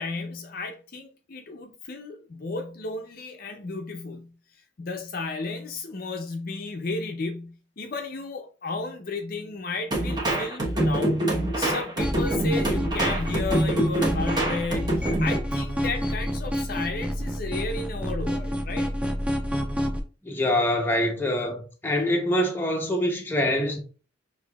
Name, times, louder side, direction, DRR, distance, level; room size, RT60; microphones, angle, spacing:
voice 1, 0.0-4.3 4.8-11.2 11.6-18.9, left 3 dB, 50° left, 0.5 m, -33 dB
sound 1, 9.9-15.4, right 1 dB, 20° right, 1.0 m, -25 dB
sound 2, 12.0-20.0, equal, 5° right, 0.3 m, -29 dB
voice 2, 20.2-23.8, left 1 dB, 10° left, 0.7 m, -25 dB
6.2 x 2.7 x 2.3 m
head